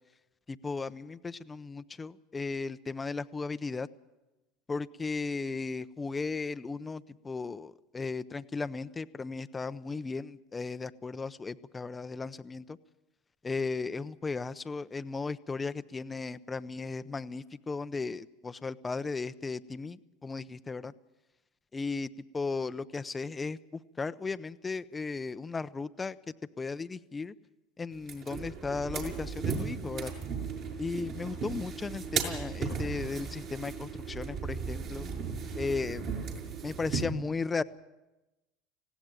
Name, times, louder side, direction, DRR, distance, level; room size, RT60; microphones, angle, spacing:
voice 1, 0.5-3.9 4.7-12.8 13.4-20.9 21.7-23.6 24.0-26.2 26.6-27.3 27.8-30.1 30.8-35.1 35.5-36.1 36.6-37.6, left 4 dB, 20° left, 12 dB, 0.7 m, -36 dB
sound 1, 28.0-37.0, right 5 dB, 55° right, 6.0 m, -36 dB
19.5 x 16.0 x 9.0 m, 1.0 s
hypercardioid pair, 90°, 0 cm